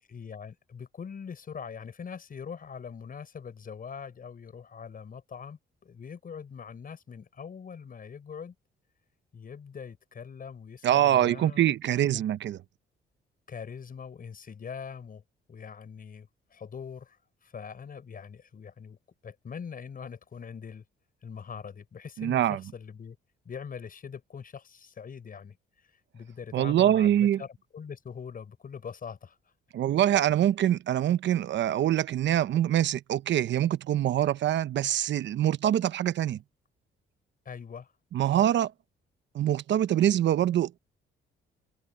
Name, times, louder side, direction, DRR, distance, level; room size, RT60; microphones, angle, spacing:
voice 1, 0.1-8.5 9.3-11.7 12.0-12.2 13.5-15.2 15.5-19.0 19.2-20.8 21.2-23.2 23.4-25.9 26.1-27.5 27.7-29.5 37.4-37.9, left 6 dB, 45° left, 5.9 m, -42 dB
voice 2, 10.8-12.6 22.2-22.6 26.5-27.4 29.7-36.4 38.1-38.7 39.3-40.8, right 11 dB, 65° right, 0.9 m, -24 dB
cardioid pair, 90°, 20 cm